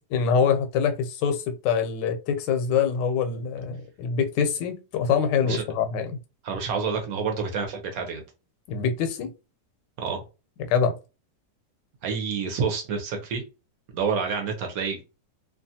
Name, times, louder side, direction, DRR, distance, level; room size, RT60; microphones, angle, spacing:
voice 1, 0.1-6.2 8.7-9.3 10.7-10.9, left 6 dB, 90° left, 1.2 m, -24 dB
voice 2, 6.4-8.2 10.0-10.2 12.0-13.4 13.9-15.0, right 5 dB, 65° right, 1.0 m, -28 dB
2.8 x 2.3 x 2.7 m
omnidirectional pair, 1.8 m